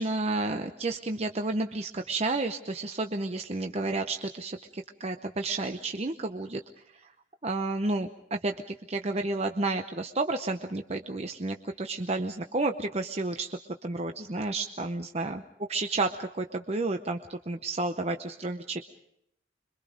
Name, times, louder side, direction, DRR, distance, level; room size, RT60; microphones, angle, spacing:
voice 1, 0.0-6.6 7.0-7.1 7.4-15.4 15.7-18.8, right 2 dB, 35° right, 6 dB, 0.8 m, -31 dB
26.0 x 23.5 x 5.1 m, 0.75 s
head